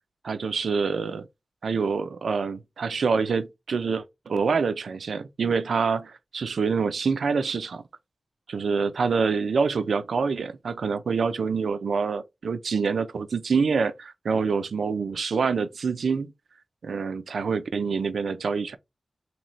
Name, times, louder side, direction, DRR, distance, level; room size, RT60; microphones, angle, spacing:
voice 1, 0.2-1.3 1.6-7.8 8.5-16.3 16.8-18.8, right 5 dB, 90° right, 0.4 m, -26 dB
3.1 x 2.8 x 3.9 m
wide cardioid pair, 85°, 0 cm